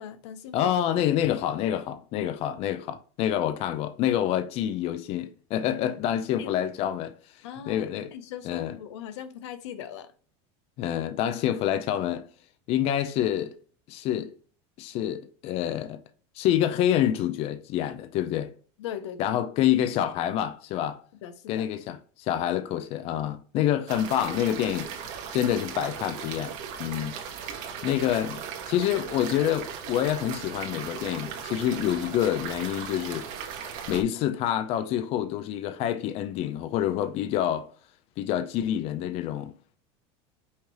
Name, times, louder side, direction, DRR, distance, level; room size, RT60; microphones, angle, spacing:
voice 1, 0.0-0.7 5.9-6.0 6.4-6.5 7.4-10.1 18.8-19.4 21.2-21.7, left 9 dB, 85° left, 0.7 m, -39 dB
voice 2, 0.5-7.2 7.7-8.1 8.5-8.7 10.8-12.3 12.7-13.5 13.9-14.3 14.8-16.0 16.4-18.5 19.2-21.0 21.5-27.2 27.5-33.3 33.5-37.7 38.2-39.5, left 11 dB, 45° left, 0.5 m, -27 dB
sound 1, 23.9-34.0, right 7 dB, 60° right, 1.2 m, -37 dB
5.6 x 3.1 x 3.0 m
supercardioid pair, 135°, 15 cm